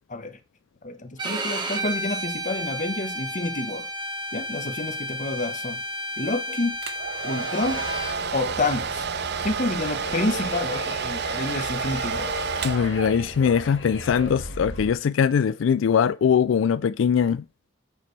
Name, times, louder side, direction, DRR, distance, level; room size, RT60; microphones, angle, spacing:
voice 1, 0.8-3.9 4.3-5.8 6.2-6.8 7.2-7.9 8.3-9.1 9.4-12.3, left 2 dB, 40° left, 1.2 m, -29 dB
Bowed string instrument, 1.2-8.2, equal, 25° right, 1.5 m, -32 dB
Domestic sounds home sounds, 6.8-13.5, right 6 dB, 60° right, 0.7 m, -30 dB
sound 1, 7.6-14.9, left 2 dB, 70° left, 1.5 m, -37 dB
voice 2, 12.6-17.4, left 7 dB, 90° left, 0.4 m, -21 dB
8.3 x 6.9 x 3.3 m
head